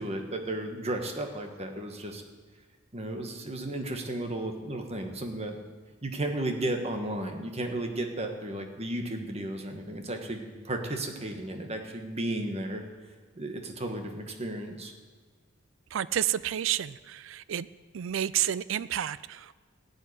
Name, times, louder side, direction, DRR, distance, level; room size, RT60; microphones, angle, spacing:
voice 1, 0.0-2.2 2.9-5.6 6.0-12.8 13.4-14.9, right 1 dB, 30° right, 4 dB, 1.4 m, -34 dB
voice 2, 15.9-17.7 17.9-19.5, right 11 dB, 65° right, 18 dB, 0.4 m, -30 dB
15.5 x 5.4 x 9.6 m, 1.5 s
head